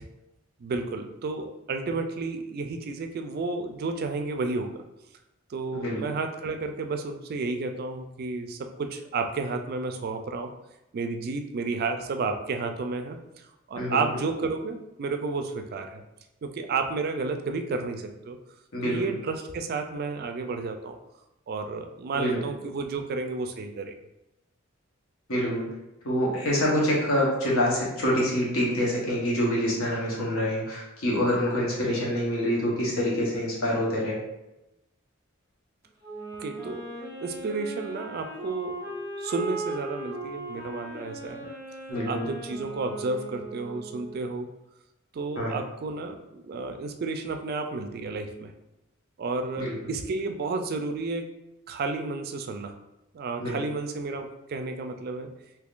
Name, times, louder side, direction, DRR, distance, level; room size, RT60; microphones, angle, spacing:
voice 1, 0.6-4.8 5.5-10.5 10.9-13.2 13.7-16.0 16.4-18.4 18.8-21.0 21.5-24.0 32.0-32.1 36.4-36.8 37.2-41.5 42.1-44.5 45.1-48.5 49.2-51.3 51.7-52.7 53.1-55.3, right 3 dB, 50° right, 6 dB, 0.3 m, -31 dB
voice 2, 5.7-6.0 13.8-14.2 18.7-19.1 22.1-22.4 25.3-25.7 26.0-34.2 41.9-42.3 45.4-45.5 49.6-49.8 53.4-53.6, equal, 90° left, -4 dB, 1.1 m, -26 dB
Wind instrument woodwind instrument, 36.0-44.3, right 2 dB, 10° left, 1.0 m, -38 dB
3.5 x 2.8 x 2.4 m, 0.93 s
head